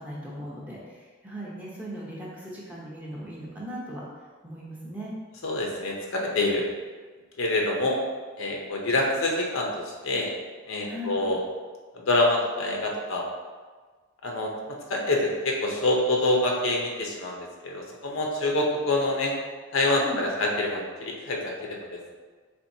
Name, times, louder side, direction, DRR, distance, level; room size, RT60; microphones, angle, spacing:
voice 1, 0.0-4.0 4.4-5.1 10.8-11.2 19.9-20.2, equal, 5° right, -6 dB, 0.7 m, -38 dB
voice 2, 5.4-6.7 7.4-8.0 8.4-10.3 10.6-11.4 11.9-13.2 14.2-19.3 19.7-22.1, left 2 dB, 65° left, 0 dB, 0.7 m, -26 dB
4.3 x 3.7 x 2.7 m, 1.4 s
head